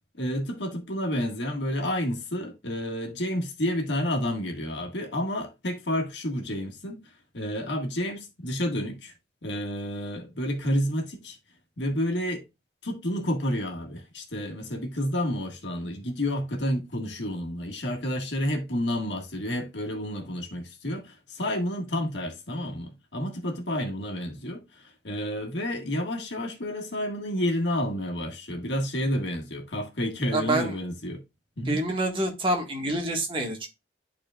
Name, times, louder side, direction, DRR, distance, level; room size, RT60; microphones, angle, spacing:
voice 1, 0.1-7.0 7.3-9.1 9.4-11.4 11.8-12.4 12.8-31.2 31.6-31.8, equal, 85° left, 1.7 m, -30 dB
voice 2, 30.3-30.7 31.7-33.7, right 1 dB, 30° right, 1.6 m, -27 dB
11.5 x 4.3 x 2.4 m
head